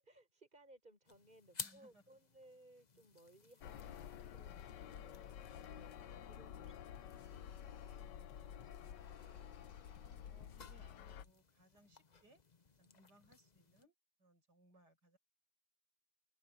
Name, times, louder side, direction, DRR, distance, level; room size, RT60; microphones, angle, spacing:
voice 1, 0.0-5.2 5.7-8.1 12.8-13.1, right 1 dB, 25° right, 5.5 m, -65 dB
sound 1, 1.1-13.8, left 5 dB, 30° left, 0.9 m, -57 dB
voice 2, 1.6-2.2 10.3-12.4 12.8-15.2, right 1 dB, 75° right, 8.5 m, -68 dB
sound 2, 3.6-11.2, left 9 dB, 85° left, 1.6 m, -51 dB
sound 3, 5.0-6.0 6.2-11.3, left 5 dB, 70° left, 2.0 m, -67 dB
open air
omnidirectional pair, 1.8 m